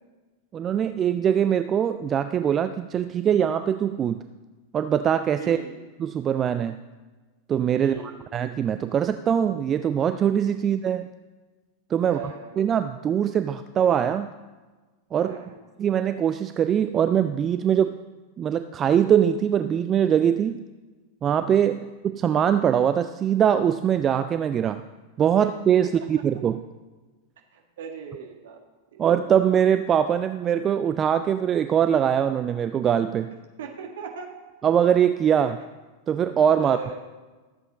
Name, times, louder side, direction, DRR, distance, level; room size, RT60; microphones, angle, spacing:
voice 1, 0.5-4.2 4.7-5.6 6.0-6.8 7.5-11.1 11.9-12.2 12.6-14.3 15.1-15.4 15.8-18.0 18.4-20.6 21.2-24.8 25.2-26.6 29.0-33.3 34.6-35.6 36.1-36.8, right 9 dB, 25° right, 10 dB, 0.4 m, -22 dB
voice 2, 5.4-5.8 7.8-8.2 12.0-12.6 15.2-15.6 21.8-21.9 25.4-25.5 25.8-25.9 27.5-28.6 28.9-29.0 33.6-34.3 36.6-37.0, right 6 dB, 60° right, 2 dB, 1.8 m, -38 dB
13.5 x 7.7 x 4.1 m, 1.3 s
figure-of-eight pair, 90°, 0 cm